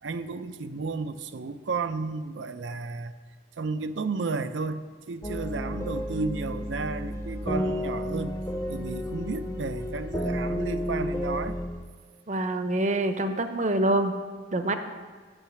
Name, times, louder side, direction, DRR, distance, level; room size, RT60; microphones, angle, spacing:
voice 1, 0.0-3.1 3.6-4.8 5.1-8.4 8.7-11.6, right 4 dB, 80° right, 11 dB, 0.5 m, -32 dB
sound 1, 5.2-11.7, equal, 20° left, 0.7 m, -31 dB
voice 2, 12.3-14.2 14.5-14.8, right 1 dB, 40° right, 8 dB, 0.7 m, -25 dB
8.9 x 5.7 x 7.4 m, 1.5 s
head